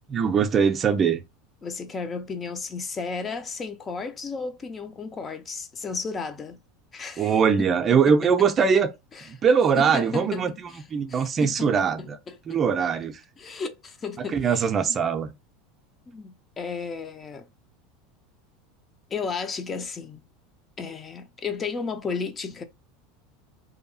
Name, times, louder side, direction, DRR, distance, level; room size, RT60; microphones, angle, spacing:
voice 1, 0.1-1.2 7.2-8.9 9.2-10.5 10.9-12.0 12.5-13.2 14.3-15.3, right 6 dB, 30° right, 0.4 m, -21 dB
voice 2, 1.6-6.6 6.9-8.7 9.1-9.3 9.8-10.8 11.1-12.6 13.4-14.7 16.1-17.5 19.1-20.3 20.8-22.6, left 4 dB, 25° left, 0.4 m, -34 dB
2.7 x 2.3 x 2.6 m
supercardioid pair, 105°, 0 cm